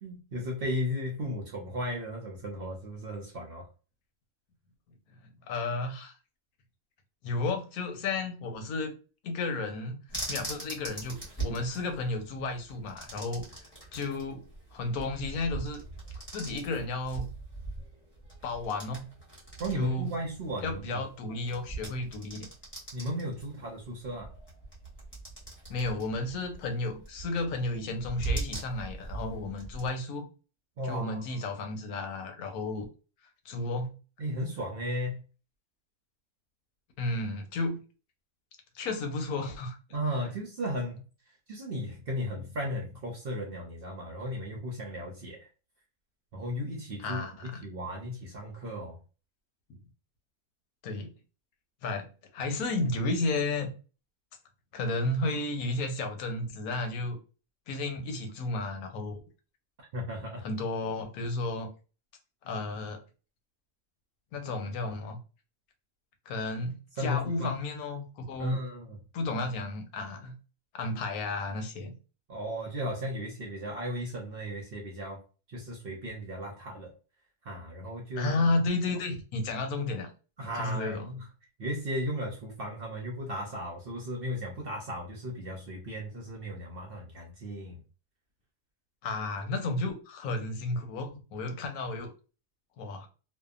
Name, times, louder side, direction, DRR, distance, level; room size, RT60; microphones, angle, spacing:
voice 1, 0.0-3.7 19.6-21.0 22.9-24.3 30.8-31.5 34.2-35.2 39.9-41.1 41.5-45.5 46.3-49.0 59.9-60.5 67.0-67.5 68.4-69.0 72.3-75.2 75.5-76.9 77.4-78.4 80.4-81.2 81.6-87.8, equal, 60° right, 0.6 m, -35 dB
voice 2, 5.5-6.1 7.2-8.9 9.2-13.5 13.9-14.5 14.7-15.8 16.3-17.3 18.4-19.1 19.7-20.1 20.6-22.5 25.7-30.3 30.8-32.9 33.4-33.9 37.0-37.8 38.7-39.8 47.0-47.6 50.8-51.1 51.8-53.7 54.7-57.2 57.7-59.2 60.4-61.7 62.4-63.0 64.3-65.2 66.3-68.6 69.1-70.4 70.7-71.9 78.2-80.1 80.5-81.1 89.0-92.1 92.8-93.1, left 2 dB, 90° left, 1.1 m, -32 dB
sound 1, 10.1-29.9, right 3 dB, 10° left, 1.0 m, -41 dB
2.7 x 2.2 x 2.3 m
omnidirectional pair, 1.5 m